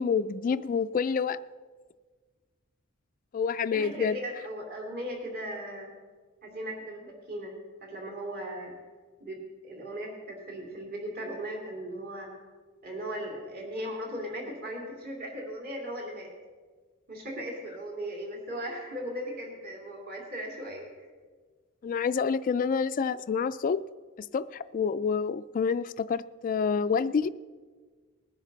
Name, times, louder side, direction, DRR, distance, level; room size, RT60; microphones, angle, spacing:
voice 1, 0.0-1.4 3.3-4.2 21.8-23.8 24.3-27.3, left 6 dB, 40° left, 12 dB, 0.3 m, -28 dB
voice 2, 3.7-5.9 6.4-7.5 7.8-8.7 9.2-12.3 12.8-16.3 17.1-20.9, equal, 45° right, -1 dB, 2.9 m, -37 dB
20.0 x 10.5 x 4.0 m, 1.5 s
head